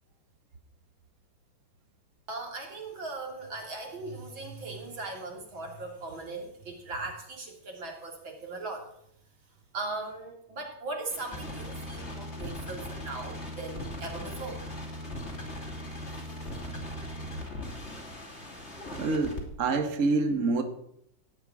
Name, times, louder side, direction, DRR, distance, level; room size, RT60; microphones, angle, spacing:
voice 1, 2.3-8.9 9.7-14.6 16.1-16.5, right 3 dB, 85° right, 1 dB, 3.8 m, -39 dB
sound 1, 11.1-19.4, left 1 dB, 35° left, 3.0 m, -39 dB
voice 2, 19.0-20.6, right 3 dB, 45° right, 6 dB, 1.6 m, -26 dB
16.5 x 5.9 x 9.6 m, 0.73 s
omnidirectional pair, 2.1 m